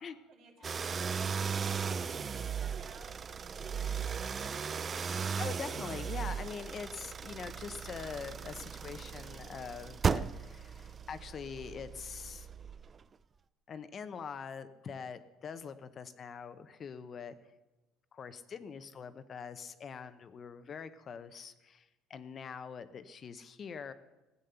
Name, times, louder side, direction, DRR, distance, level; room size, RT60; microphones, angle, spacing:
voice 1, 0.0-4.9, right 6 dB, 60° right, 0 dB, 2.7 m, -57 dB
sound 1, 0.6-13.0, right 6 dB, 30° right, 0.4 m, -37 dB
voice 2, 5.0-12.5 13.7-17.3 18.1-23.9, left 6 dB, 35° left, 11 dB, 0.7 m, -44 dB
15.0 x 8.2 x 6.9 m, 1.1 s
cardioid pair, 130°, 0 cm